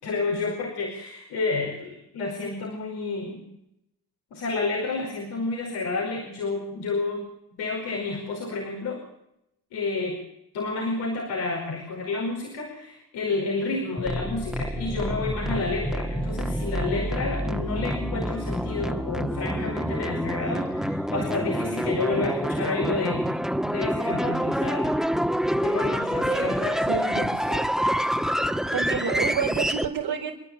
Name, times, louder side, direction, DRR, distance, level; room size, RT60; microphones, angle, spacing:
voice 1, 0.0-3.4 4.3-7.2 7.6-9.0 9.7-10.2 10.5-23.2 23.7-24.9 25.6-27.7, left 3 dB, 90° left, -2 dB, 5.1 m, -30 dB
sound 1, 14.0-29.9, equal, ahead, 1.9 m, -27 dB
voice 2, 26.2-27.2 28.7-30.4, right 7 dB, 75° right, -5 dB, 4.8 m, -30 dB
29.5 x 11.0 x 8.6 m, 0.80 s
supercardioid pair, 45°, 38 cm